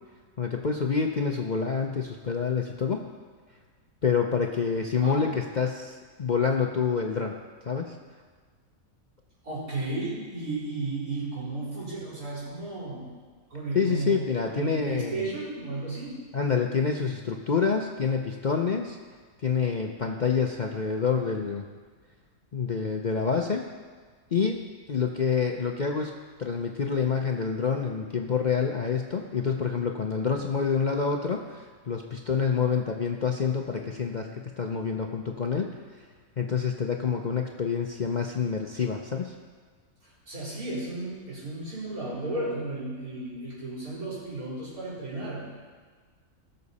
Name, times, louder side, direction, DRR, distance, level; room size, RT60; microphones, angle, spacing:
voice 1, 0.4-3.0 4.0-7.4 7.7-8.0 13.7-15.3 16.3-19.0 19.4-21.7 22.5-23.6 24.3-24.6 24.9-26.1 26.4-34.3 34.6-35.7 36.4-39.3, left 6 dB, 45° left, 2 dB, 0.6 m, -27 dB
voice 2, 5.0-5.3 9.4-13.1 13.5-14.1 14.4-16.2 40.3-45.5, right 2 dB, 80° right, -9 dB, 4.8 m, -33 dB
19.5 x 6.7 x 4.2 m, 1.5 s
omnidirectional pair, 1.5 m